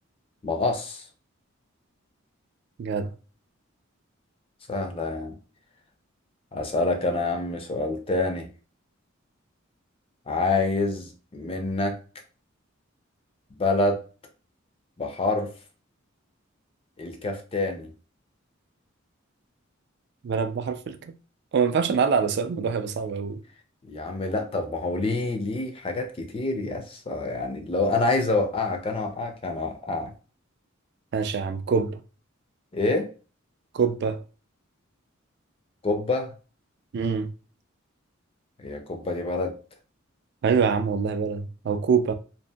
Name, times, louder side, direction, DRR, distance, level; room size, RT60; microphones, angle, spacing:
voice 1, 0.4-1.0 4.7-5.4 6.5-8.5 10.3-12.0 13.6-14.0 15.0-15.5 17.0-17.9 23.9-30.1 32.7-33.1 35.8-36.3 38.6-39.6, left 2 dB, 25° left, 0.4 m, -27 dB
voice 2, 20.2-21.1 21.5-23.4 31.1-32.0 33.7-34.2 36.9-37.3 40.4-42.1, right 6 dB, 55° right, 0.3 m, -25 dB
2.7 x 2.5 x 2.2 m
head